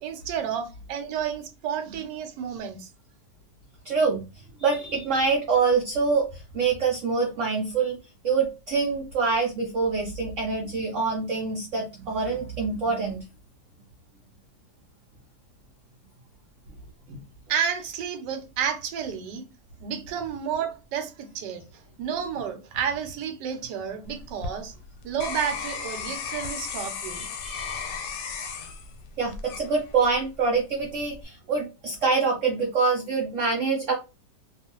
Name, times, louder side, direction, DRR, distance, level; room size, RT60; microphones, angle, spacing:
voice 1, 0.0-2.9 17.5-19.4 19.8-24.7 25.0-27.3, right 8 dB, 85° right, 1.2 m, -31 dB
voice 2, 3.8-4.2 4.6-8.0 8.2-13.2 17.1-17.2 27.1-27.8 29.2-33.9, right 4 dB, 65° right, 0.8 m, -25 dB
sound 1, 24.0-30.3 30.8-31.2, left 6 dB, 90° left, 1.2 m, -35 dB
2.6 x 2.4 x 2.9 m
omnidirectional pair, 1.8 m